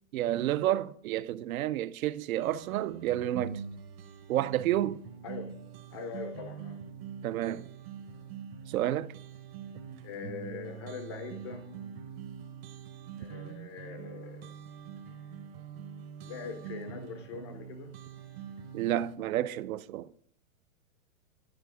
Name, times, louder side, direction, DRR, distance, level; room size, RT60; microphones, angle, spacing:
voice 1, 0.1-3.6 4.3-5.0 7.2-7.7 8.7-9.1 18.7-20.1, right 13 dB, 80° right, 0.5 m, -30 dB
sound 1, 2.4-19.2, right 7 dB, 45° right, 0.8 m, -44 dB
voice 2, 5.9-6.8 10.0-11.7 13.2-14.6 16.2-17.9, left 5 dB, 20° left, 0.4 m, -42 dB
11.0 x 4.2 x 4.7 m
hypercardioid pair, 150°, 41 cm